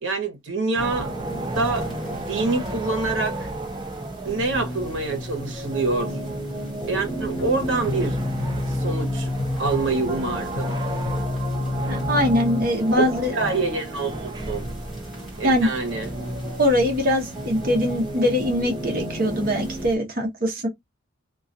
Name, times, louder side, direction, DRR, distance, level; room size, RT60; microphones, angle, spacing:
voice 1, 0.0-1.1 1.4-3.5 4.2-6.1 6.9-8.2 8.7-9.3 9.6-10.8 13.0-13.1 13.3-14.6 15.4-16.1, right 3 dB, 80° right, 0.8 m, -26 dB
sound 1, 0.7-20.0, right 1 dB, 20° right, 0.4 m, -35 dB
sound 2, 0.8-19.9, right 1 dB, ahead, 1.1 m, -34 dB
sound 3, 7.4-12.7, left 2 dB, 60° left, 0.4 m, -28 dB
voice 2, 11.9-13.3 15.4-15.7 16.6-20.7, left 1 dB, 45° right, 0.8 m, -22 dB
2.3 x 2.2 x 2.5 m
head